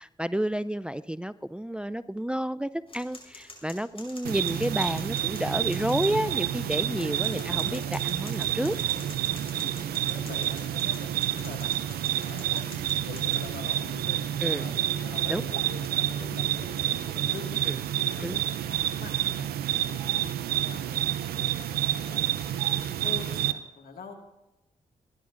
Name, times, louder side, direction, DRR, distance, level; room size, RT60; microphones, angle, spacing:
voice 1, 0.0-8.8 14.4-14.7 15.3-15.4 17.7-17.8 18.2-18.4, equal, 5° right, 16 dB, 0.4 m, -30 dB
sound 1, 2.9-13.4, left 2 dB, 35° left, 5.1 m, -48 dB
sound 2, 4.2-23.5, right 11 dB, 80° right, 0.5 m, -29 dB
Conversation, 5.9-11.6 12.1-17.0, left 9 dB, 85° left, 0.6 m, -46 dB
voice 2, 7.1-7.8 9.5-10.8 11.1-14.8 15.1-24.1, left 5 dB, 70° left, 3 dB, 1.9 m, -46 dB
29.5 x 11.0 x 2.5 m, 0.92 s
supercardioid pair, 45°, 16 cm